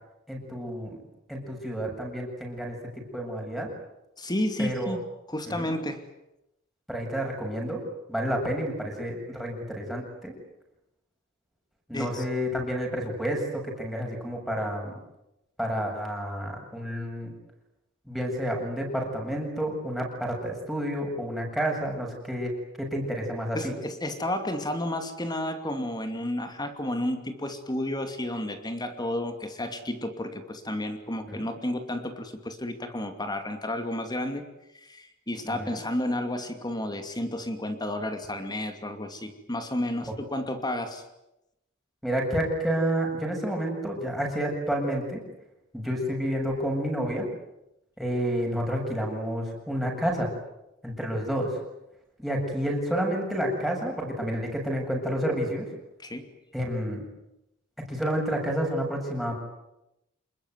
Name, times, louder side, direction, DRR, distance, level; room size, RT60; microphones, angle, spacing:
voice 1, 0.3-1.0 1.3-2.8 3.1-3.7 4.6-5.0 5.5-5.7 6.9-7.8 8.1-10.3 11.9-15.0 15.6-17.3 18.1-22.5 22.8-23.7 31.3-31.5 35.4-35.8 42.0-45.2 45.7-47.3 48.0-50.3 50.8-51.6 52.2-55.7 56.5-57.1 57.9-59.3, equal, ahead, 2 dB, 7.6 m, -30 dB
voice 2, 4.2-5.0 5.3-6.0 11.9-12.2 23.5-34.4 34.7-41.0 56.0-56.3, left 1 dB, 20° left, 7 dB, 2.6 m, -31 dB
27.5 x 21.5 x 9.5 m, 0.89 s
head